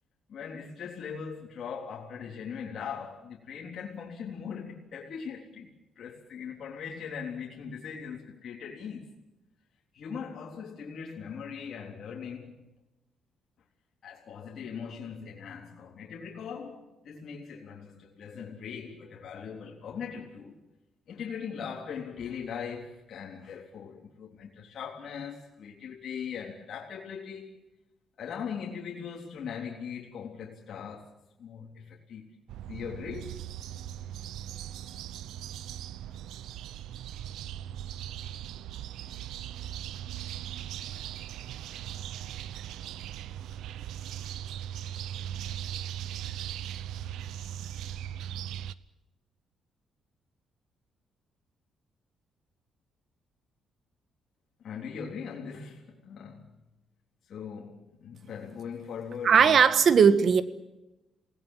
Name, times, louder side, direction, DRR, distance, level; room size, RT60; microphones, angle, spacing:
voice 1, 0.3-9.1 9.9-12.6 14.0-20.6 21.1-27.5 28.2-31.1 31.4-32.3 32.7-33.4 54.6-56.6 57.3-59.7, left 6 dB, 60° left, 3.7 m, -40 dB
sound 1, 32.5-48.7, right 11 dB, 90° right, 0.7 m, -39 dB
voice 2, 59.2-60.4, right 6 dB, 50° right, 1.5 m, -18 dB
28.0 x 18.5 x 7.5 m
cardioid pair, 115°, 0 cm